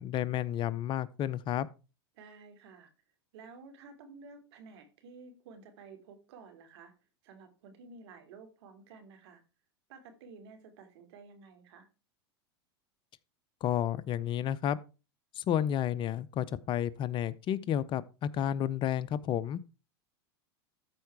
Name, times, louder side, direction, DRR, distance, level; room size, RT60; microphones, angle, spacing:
voice 1, 0.0-1.7 13.6-14.8 15.4-19.6, left 10 dB, 35° left, 0.6 m, -31 dB
voice 2, 2.1-2.9 3.3-6.9 7.2-9.4 9.9-11.9, right 4 dB, 70° right, 2.9 m, -52 dB
13.5 x 4.7 x 4.7 m
hypercardioid pair, 110°, 14 cm